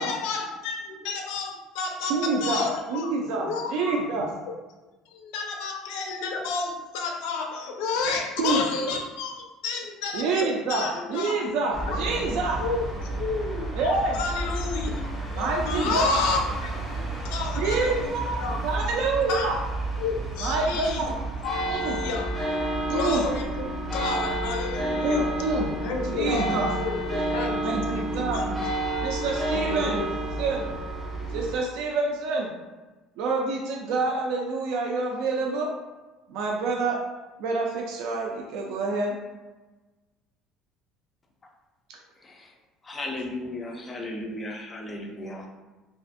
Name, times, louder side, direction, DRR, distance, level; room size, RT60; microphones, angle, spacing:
voice 1, 0.0-3.1 3.5-4.1 5.1-11.4 11.9-12.0 12.6-18.6 19.3-19.5 20.0-21.1 21.4-22.3 22.9-25.2 25.8-28.1 28.5-28.6 29.5-30.1, left 4 dB, 85° left, 2 dB, 0.5 m, -31 dB
voice 2, 2.0-4.3 8.4-8.6 10.1-12.6 13.7-14.2 15.3-16.2 17.6-19.6 20.4-21.2 21.7-22.0 22.9-23.2 25.0-25.7 26.1-26.7 27.6-28.4 29.0-30.1 30.4-30.7 31.3-32.5 33.2-35.7 36.3-37.0 37.4-39.2 41.9-42.0, right 3 dB, 65° right, 0 dB, 0.3 m, -27 dB
sound 1, 11.7-31.6, right 1 dB, 5° right, 0.7 m, -30 dB
voice 3, 42.2-42.5 42.8-45.5, left 1 dB, 20° left, 1 dB, 0.3 m, -35 dB
2.5 x 2.4 x 2.5 m, 1.2 s
cardioid pair, 170°, 0 cm